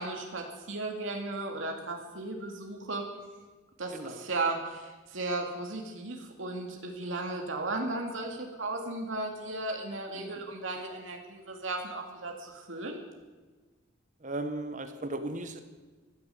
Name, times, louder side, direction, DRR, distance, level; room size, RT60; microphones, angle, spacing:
voice 1, 0.0-3.1 3.8-13.0, right 2 dB, 75° right, 2 dB, 2.2 m, -35 dB
voice 2, 3.9-4.2 10.1-10.4 14.2-15.6, right 2 dB, 40° right, 9 dB, 1.2 m, -37 dB
15.5 x 11.0 x 8.3 m, 1.3 s
head